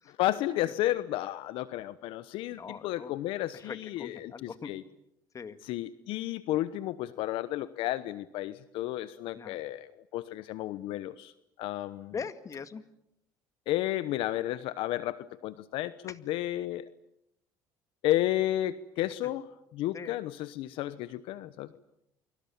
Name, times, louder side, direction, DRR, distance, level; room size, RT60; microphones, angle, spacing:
voice 1, 0.2-4.8 5.6-11.3 11.6-12.1 13.7-16.9 18.0-19.5 19.7-21.7, left 14 dB, 70° left, 15 dB, 1.0 m, -32 dB
voice 2, 2.5-3.2 3.5-4.7 5.3-5.6 9.4-9.6 12.1-12.8 16.1-16.2 19.2-19.3 19.9-20.2, left 6 dB, 35° left, 11 dB, 2.1 m, -41 dB
29.5 x 23.5 x 7.2 m, 0.80 s
supercardioid pair, 85°, 9 cm